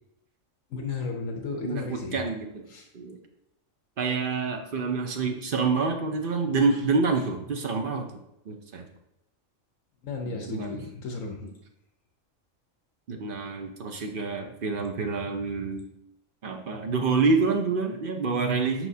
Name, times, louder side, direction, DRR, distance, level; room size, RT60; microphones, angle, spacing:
voice 1, 0.7-2.2 2.7-2.9 10.0-11.4, left 4 dB, 75° left, 2 dB, 1.2 m, -34 dB
voice 2, 1.6-2.7 2.9-3.2 4.0-8.1 8.5-8.9 10.4-10.8 13.1-15.9 16.4-18.9, right 4 dB, 50° right, 4 dB, 0.7 m, -27 dB
6.2 x 5.6 x 2.7 m, 0.83 s
omnidirectional pair, 1.4 m